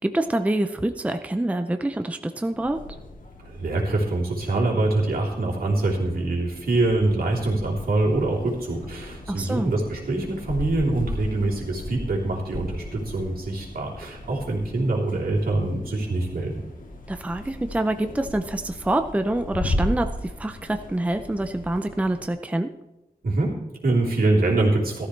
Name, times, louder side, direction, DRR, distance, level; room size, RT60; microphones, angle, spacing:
voice 1, 0.0-2.8 9.3-9.7 17.1-22.7, right 1 dB, 10° right, 8 dB, 0.5 m, -26 dB
sound 1, 2.5-22.3, left 1 dB, 60° left, 1.9 m, -36 dB
voice 2, 3.4-16.6 23.2-25.1, right 2 dB, 75° right, -3 dB, 3.6 m, -24 dB
15.5 x 13.5 x 3.3 m, 0.98 s
wide cardioid pair, 155°, 16 cm